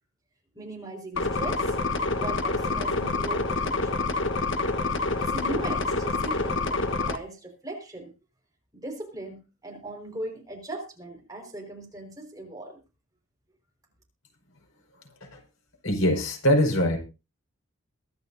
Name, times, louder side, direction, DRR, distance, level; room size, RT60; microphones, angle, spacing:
voice 1, 0.5-1.8 2.2-4.1 5.2-8.1 8.7-12.8, right 2 dB, 15° right, 1 dB, 5.2 m, -39 dB
sound 1, 1.2-7.2, left 3 dB, 65° left, 1.4 m, -27 dB
voice 2, 15.8-17.0, equal, 85° left, 2 dB, 5.1 m, -23 dB
23.0 x 11.5 x 2.8 m, 0.30 s
head